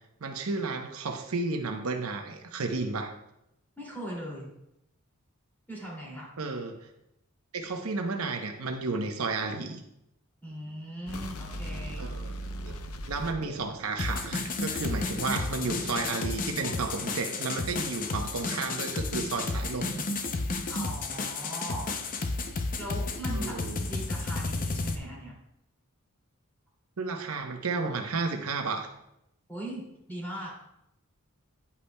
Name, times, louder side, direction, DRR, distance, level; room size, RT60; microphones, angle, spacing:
voice 1, 0.2-3.1 6.4-6.8 7.5-9.8 12.0-12.3 12.6-12.7 13.1-20.0 23.3-23.8 27.0-28.9, right 3 dB, 75° right, 4 dB, 0.8 m, -32 dB
voice 2, 3.8-4.5 5.7-6.3 10.4-12.1 12.7-12.8 20.7-21.9 22.8-25.3 29.5-30.5, right 1 dB, 10° left, -4 dB, 2.5 m, -39 dB
sound 1, 11.1-14.2 14.5-16.8, equal, 75° left, 0.7 m, -40 dB
sound 2, 14.0-25.0, left 3 dB, 40° left, 0.5 m, -32 dB
9.7 x 8.3 x 2.2 m, 0.84 s
head